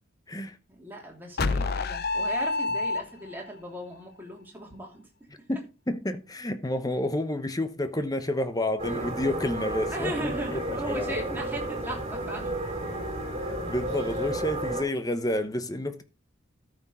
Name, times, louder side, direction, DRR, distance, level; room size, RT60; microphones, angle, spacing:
voice 1, 0.7-5.0 9.9-12.6, right 1 dB, 10° right, 3.0 m, -37 dB
sound 1, 1.4-3.5, left 3 dB, 45° left, 0.6 m, -27 dB
voice 2, 5.5-11.2 13.3-16.0, left 1 dB, 15° left, 0.9 m, -30 dB
sound 2, 8.8-14.8, right 1 dB, 30° right, 3.0 m, -32 dB
13.5 x 6.1 x 4.3 m
head